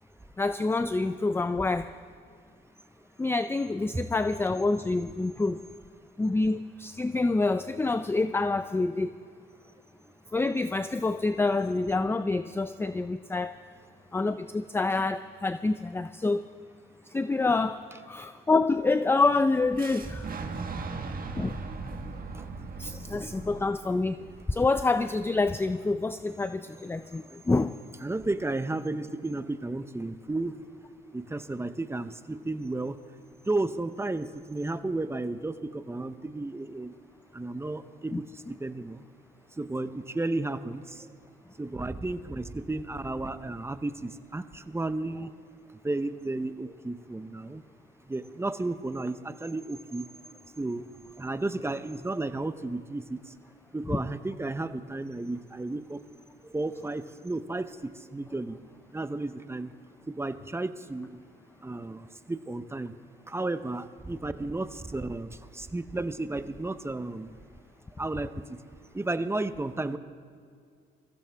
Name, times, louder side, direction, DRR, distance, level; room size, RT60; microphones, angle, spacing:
voice 1, 0.4-1.9 3.2-5.6 6.2-9.2 10.3-13.5 14.1-16.4 17.1-20.3 21.3-21.6 22.8-27.7 38.1-38.2 53.9-54.0, left 3 dB, 10° left, 11 dB, 0.4 m, -27 dB
Fire / Explosion, 19.8-25.7, right 4 dB, 45° right, 1.5 m, -39 dB
voice 2, 20.6-20.9 22.3-22.5 27.0-27.4 28.0-30.6 31.1-33.0 33.4-36.9 37.3-39.0 39.6-41.1 41.6-45.3 45.8-47.6 48.1-50.1 50.6-50.9 51.2-53.3 53.7-56.0 56.4-58.6 58.9-59.7 60.1-61.2 61.6-62.9 63.3-67.4 68.0-68.6 68.9-70.0, right 2 dB, 15° right, 11 dB, 0.7 m, -33 dB
22.5 x 15.0 x 3.5 m, 2.3 s
cardioid pair, 85°, 20 cm